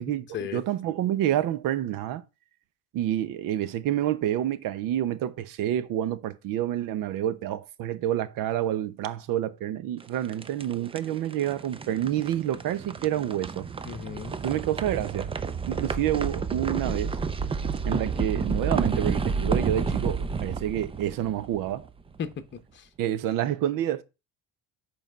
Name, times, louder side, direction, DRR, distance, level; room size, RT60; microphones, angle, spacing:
voice 1, 0.5-2.2 2.9-13.7 14.3-15.3 15.7-17.2 17.8-21.8 23.0-24.0, right 12 dB, 65° right, 0.8 m, -28 dB
sound 1, 10.0-22.1, right 5 dB, 15° right, 0.4 m, -30 dB
voice 2, 13.8-14.4 22.2-22.9, left 7 dB, 30° left, 1.0 m, -35 dB
7.3 x 4.5 x 5.5 m
cardioid pair, 135°, 35 cm